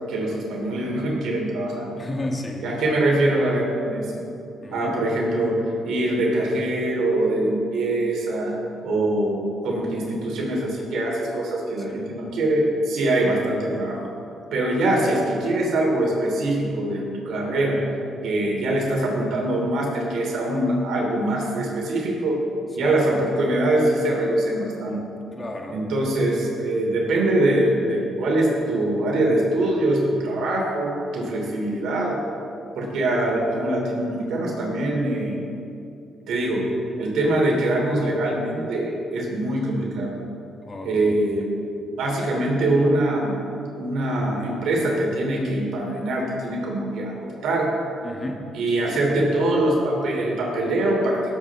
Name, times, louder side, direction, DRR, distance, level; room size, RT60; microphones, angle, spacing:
voice 1, 0.1-1.9 2.6-4.1 4.7-8.5 8.8-14.0 14.5-17.8 18.2-22.4 22.8-25.0 25.7-32.2 32.7-35.4 36.3-36.7 37.0-40.1 40.8-41.5 41.9-43.4 43.8-47.7 48.5-51.2, right 1 dB, 75° right, -2 dB, 3.1 m, -23 dB
voice 2, 2.0-2.7 4.6-5.0 11.8-12.1 22.8-23.0 25.3-25.8 40.6-41.2 48.0-48.5 48.8-49.0, left 1 dB, 30° left, 1 dB, 1.6 m, -33 dB
17.5 x 8.1 x 3.7 m, 2.7 s
cardioid pair, 90°, 0 cm